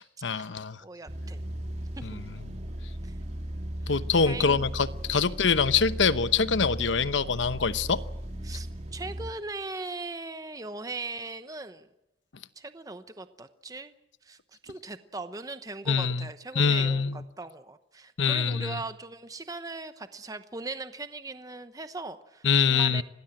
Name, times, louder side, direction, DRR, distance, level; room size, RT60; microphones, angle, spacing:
voice 1, 0.0-0.8 2.0-2.2 3.9-8.0 15.9-16.3 16.5-17.2 18.2-18.8 22.4-23.0, left 5 dB, 80° left, 0.9 m, -25 dB
voice 2, 0.8-1.5 2.0-2.2 3.0-3.1 3.8-3.9 4.2-4.7 5.1-5.3 8.4-11.9 12.6-13.9 14.2-23.0, right 3 dB, 20° right, 0.9 m, -39 dB
sound 1, 1.1-9.3, right 1 dB, 35° right, 3.0 m, -37 dB
26.5 x 19.0 x 7.7 m
head